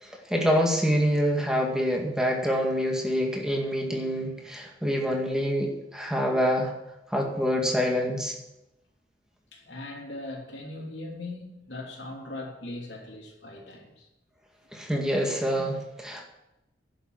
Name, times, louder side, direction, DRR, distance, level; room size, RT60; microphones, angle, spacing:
voice 1, 0.0-6.7 7.1-8.3 14.7-16.2, equal, 5° right, 2.1 m, -26 dB
voice 2, 9.5-14.1, left 2 dB, 75° left, 3.2 m, -39 dB
11.5 x 7.2 x 8.8 m
head